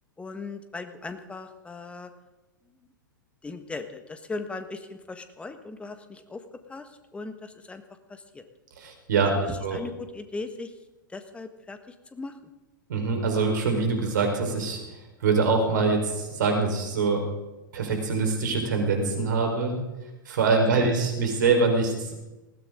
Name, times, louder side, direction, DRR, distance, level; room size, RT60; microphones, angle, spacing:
voice 1, 0.2-2.1 3.4-6.4 6.7-7.8 8.1-8.4 9.2-10.7 11.1-12.3 20.8-20.9, left 3 dB, 10° left, 9 dB, 1.6 m, -38 dB
voice 2, 8.8-9.3 9.6-9.8 12.9-17.2 17.7-19.8 20.2-22.1, right 4 dB, 60° right, 3 dB, 4.4 m, -24 dB
20.0 x 15.5 x 3.8 m, 1.1 s
figure-of-eight pair, 100°, 11 cm